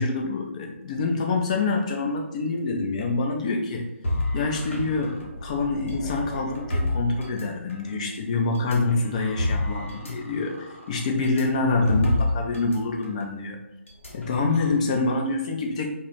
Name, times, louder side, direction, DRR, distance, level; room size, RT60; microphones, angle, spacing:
voice 1, 0.0-3.9 4.3-13.6 14.1-15.9, left 3 dB, 30° left, 1 dB, 0.4 m, -26 dB
sound 1, 4.0-7.9 8.5-12.8 13.0-13.2 13.9-14.7, left 1 dB, 65° left, 0.8 m, -30 dB
2.3 x 2.0 x 3.0 m, 0.94 s
figure-of-eight pair, 145°, 7 cm